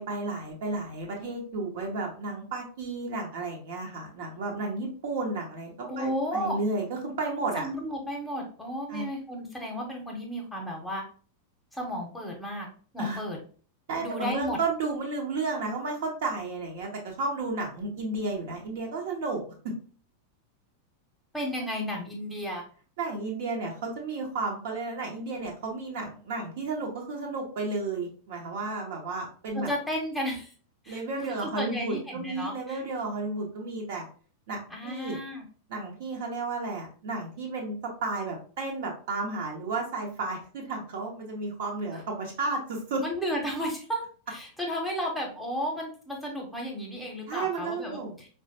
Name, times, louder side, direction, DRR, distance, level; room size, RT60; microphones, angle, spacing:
voice 1, 0.0-7.7 8.9-9.0 13.0-13.2 13.9-19.7 23.0-29.7 30.9-34.0 34.5-35.2 35.7-43.0 47.3-48.1, right 3 dB, 55° right, 0 dB, 1.0 m, -32 dB
voice 2, 5.9-6.6 7.6-11.0 11.7-12.7 12.9-13.4 14.0-14.6 21.3-22.6 29.5-30.5 30.8-32.8 34.7-35.4 43.0-48.3, equal, 5° left, 0 dB, 1.0 m, -33 dB
4.7 x 2.2 x 2.8 m, 0.41 s
figure-of-eight pair, 90°, 0 cm